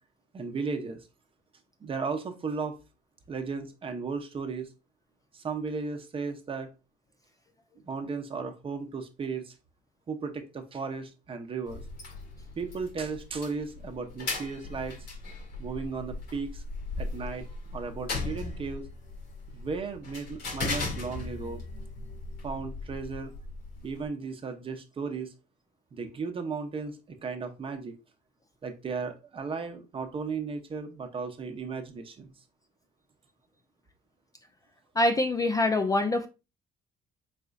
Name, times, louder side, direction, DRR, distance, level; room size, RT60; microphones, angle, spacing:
voice 1, 0.3-1.0 1.8-2.8 3.3-4.7 5.3-6.7 7.8-9.5 10.1-11.8 12.6-15.0 15.6-16.6 17.0-17.5 17.7-18.9 19.5-21.6 22.4-23.3 23.8-25.3 25.9-27.9 28.6-32.3, right 4 dB, 30° right, 0.7 m, -35 dB
sound 1, 11.6-24.1, left 3 dB, 80° left, 1.8 m, -38 dB
voice 2, 35.0-36.3, left 2 dB, 20° left, 0.4 m, -24 dB
4.2 x 3.8 x 2.3 m
cardioid pair, 110°, 17 cm